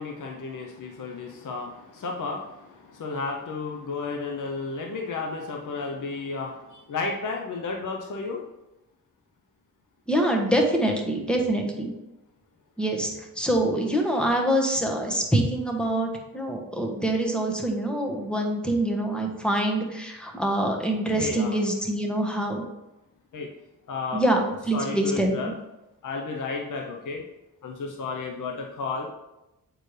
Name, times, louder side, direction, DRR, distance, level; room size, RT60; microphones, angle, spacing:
voice 1, 0.0-8.4 21.1-21.6 23.3-23.5 23.9-24.2 24.7-25.5 26.0-27.2 27.6-29.1, left 4 dB, 60° left, 1 dB, 0.8 m, -32 dB
voice 2, 10.1-11.9 12.8-13.1 13.3-22.7 24.1-24.4 24.7-25.4, right 1 dB, 5° left, 1 dB, 1.3 m, -25 dB
7.8 x 4.5 x 3.3 m, 0.95 s
cardioid pair, 75°, 35 cm